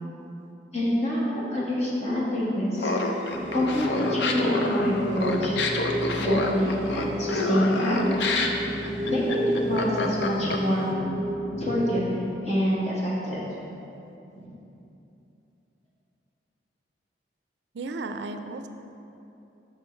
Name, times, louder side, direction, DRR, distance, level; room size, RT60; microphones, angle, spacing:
voice 1, 0.7-2.9 3.5-5.5 6.2-8.4 9.1-10.9 11.6-13.4 14.4-14.5, equal, 35° left, -7 dB, 1.6 m, -26 dB
Laughter, 2.8-10.8, left 3 dB, 70° left, 0.6 m, -28 dB
sound 1, 3.3-12.0, equal, 30° right, 0.8 m, -31 dB
voice 2, 17.7-18.7, right 3 dB, 70° right, 8 dB, 0.4 m, -34 dB
6.3 x 5.8 x 4.4 m, 2.8 s
head